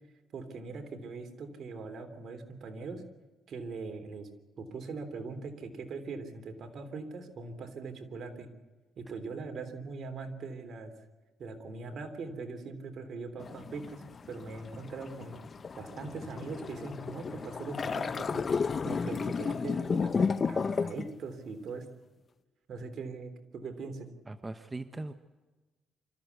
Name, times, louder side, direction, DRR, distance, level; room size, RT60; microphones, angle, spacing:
voice 1, 0.3-3.0 3.5-4.3 4.6-8.5 9.0-10.9 11.4-15.4 15.7-18.5 18.8-21.9 22.7-24.1, right 4 dB, 60° right, 7 dB, 3.3 m, -41 dB
sound 1, 13.4-21.1, left 5 dB, 40° left, 0.7 m, -33 dB
voice 2, 24.3-25.2, right 2 dB, 20° right, 10 dB, 1.1 m, -40 dB
26.5 x 14.0 x 8.2 m, 1.2 s
cardioid pair, 90°, 0 cm